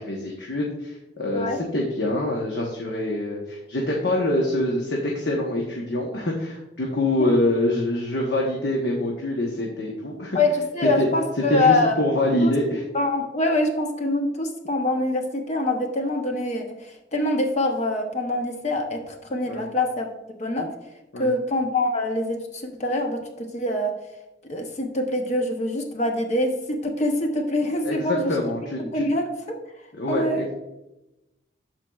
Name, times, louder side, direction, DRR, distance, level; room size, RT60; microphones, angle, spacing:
voice 1, 0.0-1.5 1.7-10.4 11.0-11.1 11.5-12.8 19.5-19.7 21.1-21.3 27.8-29.0 30.0-30.5, left 1 dB, 70° left, -2 dB, 0.9 m, -25 dB
voice 2, 10.3-12.0 12.4-12.5 12.9-20.1 20.4-20.7 21.2-23.9 24.5-28.3 28.8-29.6 30.1-30.4, left 1 dB, 40° left, 4 dB, 0.7 m, -24 dB
12.5 x 4.5 x 2.3 m, 0.97 s
head